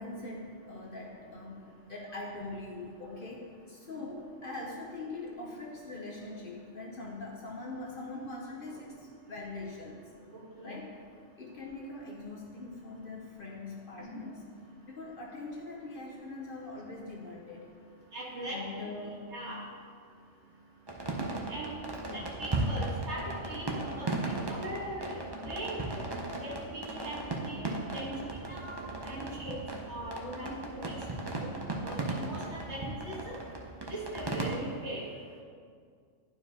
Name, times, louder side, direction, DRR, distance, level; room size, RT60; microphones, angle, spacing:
voice 1, 0.0-10.0 10.6-10.9 11.4-14.5 14.9-17.7 18.4-19.3 22.1-22.3, left 2 dB, 50° left, -2 dB, 0.8 m, -42 dB
voice 2, 10.3-10.7 14.0-14.2 18.1-18.6 19.3-19.6 21.5-21.8 22.4-26.0 26.3-29.6 29.9-31.1 31.3-31.5 31.8-33.4 33.8-35.0, right 1 dB, 60° right, -4 dB, 1.8 m, -40 dB
sound 1, 20.9-34.6, right 2 dB, 25° right, 0.5 m, -36 dB
11.5 x 4.6 x 2.8 m, 2.1 s
omnidirectional pair, 1.3 m